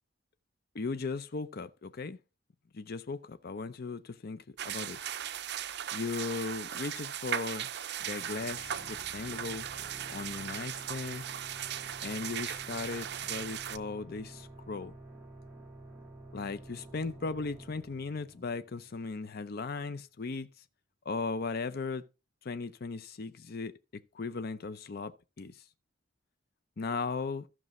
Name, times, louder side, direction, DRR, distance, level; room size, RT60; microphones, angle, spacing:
voice 1, 0.7-2.2 2.7-5.0 5.9-7.7 8.0-9.7 10.1-11.2 12.0-14.9 16.3-20.5 21.1-22.0 22.4-23.7 24.1-25.1 25.4-25.5 26.8-27.5, left 4 dB, 55° left, 0.6 m, -37 dB
sound 1, 4.6-13.8, right 10 dB, 60° right, 0.6 m, -38 dB
sound 2, 8.0-19.4, right 1 dB, 10° right, 2.4 m, -51 dB
14.5 x 6.0 x 3.0 m
head